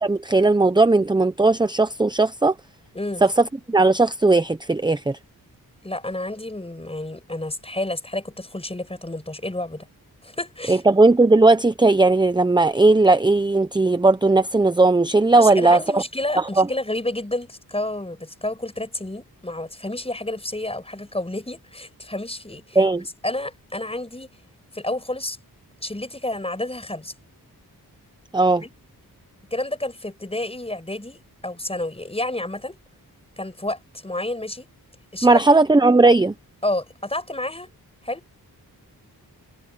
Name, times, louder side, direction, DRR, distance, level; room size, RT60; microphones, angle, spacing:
voice 1, 0.0-2.5 3.2-5.2 10.7-16.0 16.4-16.7 22.8-23.0 28.3-28.6 35.2-36.3, right 3 dB, 10° right, 0.7 m, -17 dB
voice 2, 5.8-9.9 10.2-10.8 15.4-22.8 23.2-24.3 24.7-25.4 25.8-27.1 28.6-28.7 29.5-32.8 33.4-34.7 35.1-35.5 36.6-37.7 38.0-38.2, left 1 dB, 15° left, 5.9 m, -30 dB
wide cardioid pair, 100°, 38 cm